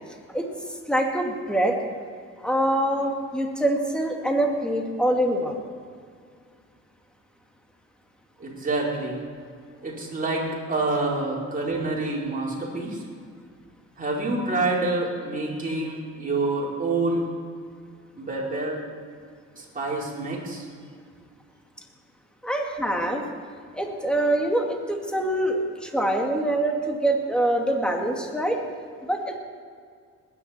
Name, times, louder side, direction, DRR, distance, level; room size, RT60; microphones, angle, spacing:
voice 1, 0.9-1.8 2.4-5.6 22.4-23.2 23.7-28.6 29.0-29.4, right 1 dB, 5° left, 1 dB, 2.3 m, -24 dB
voice 2, 8.4-9.2 9.8-13.0 14.0-17.2 18.2-18.8 19.6-20.6, right 2 dB, 30° right, -4 dB, 4.6 m, -27 dB
20.5 x 10.0 x 4.5 m, 2.1 s
cardioid pair, 90°, 30 cm